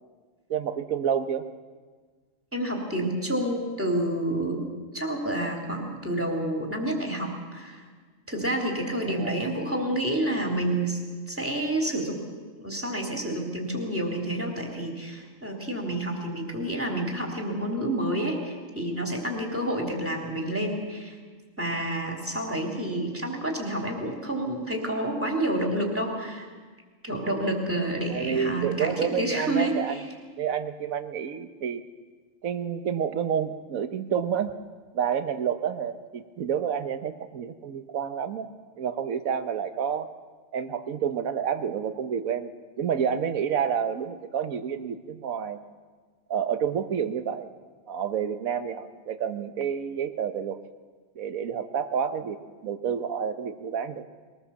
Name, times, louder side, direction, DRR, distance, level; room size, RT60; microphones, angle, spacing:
voice 1, 0.5-1.5 9.1-9.5 22.4-22.8 28.1-30.0 30.4-31.8 32.4-34.5 34.9-38.5 38.8-40.1 40.5-42.5 42.8-45.6 46.3-47.5 47.9-50.6 51.2-54.1, right 8 dB, 90° right, 10 dB, 1.4 m, -29 dB
voice 2, 2.5-4.7 4.9-7.8 8.3-11.0 11.3-12.2 12.6-21.2 21.6-26.5 27.0-30.1, right 1 dB, 10° right, 0 dB, 3.2 m, -29 dB
22.0 x 19.5 x 7.1 m, 1.5 s
omnidirectional pair, 1.4 m